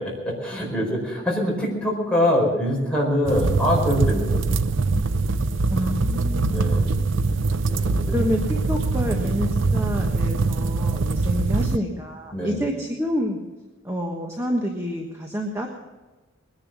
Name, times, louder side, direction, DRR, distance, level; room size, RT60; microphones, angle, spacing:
voice 1, 0.2-4.5 6.4-7.0 7.7-8.2 12.3-12.6, left 1 dB, 5° left, -4 dB, 4.8 m, -24 dB
sound 1, 3.3-11.8, right 3 dB, 65° right, 0.6 m, -23 dB
voice 2, 5.7-7.0 8.1-13.4 13.8-15.7, equal, 15° right, 1 dB, 1.3 m, -28 dB
21.0 x 10.5 x 6.2 m, 1.2 s
head